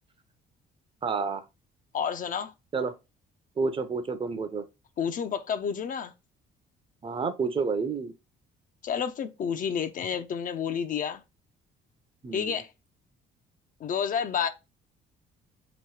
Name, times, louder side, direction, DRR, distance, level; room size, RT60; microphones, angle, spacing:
voice 1, 1.0-1.4 2.7-2.9 3.6-4.7 7.0-8.1 12.2-12.6, right 4 dB, 30° right, 0.6 m, -29 dB
voice 2, 1.9-2.5 5.0-6.1 8.8-11.2 12.3-12.7 13.8-14.5, left 7 dB, 45° left, 0.5 m, -30 dB
3.5 x 3.0 x 4.7 m
cardioid pair, 110°, 19 cm